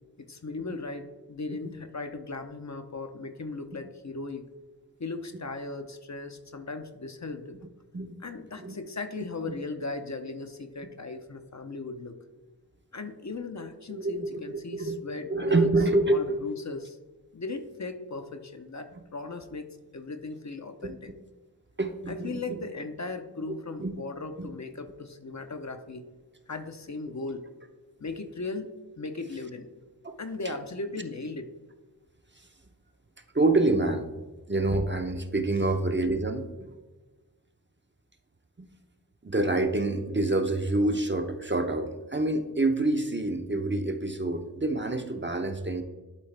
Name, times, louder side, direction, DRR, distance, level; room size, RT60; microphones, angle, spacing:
voice 1, 0.2-4.5 5.0-7.6 8.2-12.2 12.9-15.7 16.1-17.0 17.3-19.7 19.9-21.1 22.1-26.1 26.5-27.5 28.0-29.7 30.2-31.5, left 3 dB, 50° left, 7 dB, 0.7 m, -37 dB
voice 2, 13.9-15.0 15.3-16.4 20.8-20.9 21.8-22.6 23.8-23.9 24.4-24.5 30.0-30.2 30.4-30.5 32.4-32.5 33.3-34.1 34.5-36.7 38.6-38.7 39.2-45.8, right 2 dB, 30° right, 6 dB, 0.7 m, -27 dB
11.5 x 3.9 x 3.3 m, 1.2 s
wide cardioid pair, 50°, 37 cm